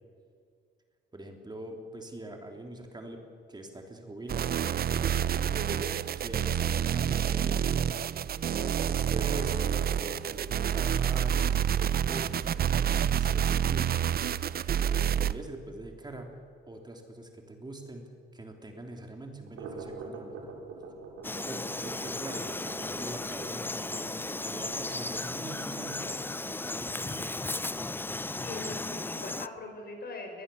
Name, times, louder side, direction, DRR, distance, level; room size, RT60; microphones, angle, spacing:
voice 1, 1.1-3.2 3.5-4.5 5.5-7.8 8.4-13.9 14.1-16.3 16.7-18.0 18.3-20.3 21.4-27.2, right 1 dB, 20° right, 3 dB, 3.1 m, -43 dB
sound 1, 4.3-15.3, right 9 dB, 50° right, 0.7 m, -28 dB
sound 2, 19.3-28.3, right 4 dB, 90° right, 4.1 m, -47 dB
Frog, 21.2-29.5, left 2 dB, 10° left, 0.5 m, -35 dB
voice 2, 28.4-30.4, left 3 dB, 50° left, 4 dB, 5.4 m, -41 dB
22.5 x 19.5 x 7.0 m, 2.3 s
cardioid pair, 90°, 20 cm